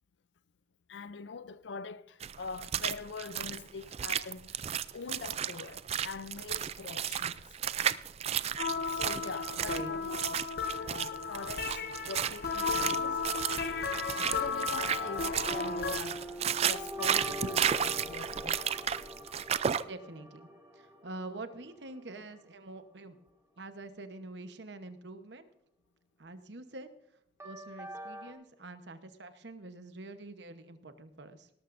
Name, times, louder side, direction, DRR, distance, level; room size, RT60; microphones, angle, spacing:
voice 1, 0.9-4.7 4.9-7.4 8.8-10.5 10.8-13.2 14.2-16.3 16.6-18.9, left 4 dB, 80° left, 0.5 m, -43 dB
sound 1, 2.2-19.8, right 9 dB, 35° right, 0.3 m, -33 dB
sound 2, 8.6-16.0, left 5 dB, 60° left, 0.9 m, -34 dB
sound 3, 14.8-22.0 27.4-28.3, equal, 15° right, 1.9 m, -43 dB
voice 2, 19.8-23.2 23.6-25.5 26.2-26.9 27.4-31.5, right 2 dB, 70° right, 1.1 m, -46 dB
18.5 x 12.5 x 2.6 m
head